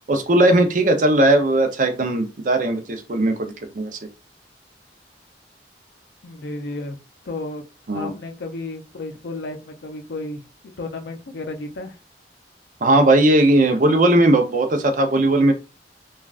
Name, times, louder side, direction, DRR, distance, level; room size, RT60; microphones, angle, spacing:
voice 1, 0.1-3.9 7.9-8.1 12.8-15.5, right 1 dB, 45° right, 0.5 m, -18 dB
voice 2, 6.2-7.0 7.3-7.6 7.9-12.0, left 2 dB, 70° left, 0.5 m, -33 dB
3.2 x 2.3 x 2.4 m
head